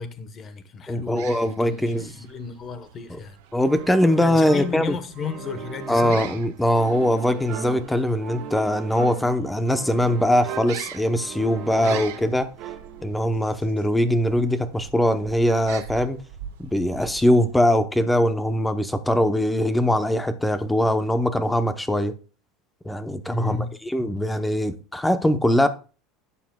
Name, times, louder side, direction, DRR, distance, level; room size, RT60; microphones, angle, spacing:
voice 1, 0.0-3.4 4.2-6.2 11.6-12.0 23.2-23.7, left 5 dB, 25° left, 1.0 m, -34 dB
voice 2, 0.9-2.2 3.5-5.0 5.9-12.5 13.0-16.2 16.6-22.1 22.8-25.7, left 1 dB, 5° left, 0.7 m, -22 dB
sound 1, 1.0-17.7, right 10 dB, 80° right, 1.3 m, -44 dB
sound 2, 3.7-13.2, right 9 dB, 40° right, 1.6 m, -38 dB
12.0 x 8.3 x 2.2 m
cardioid pair, 170°, 0 cm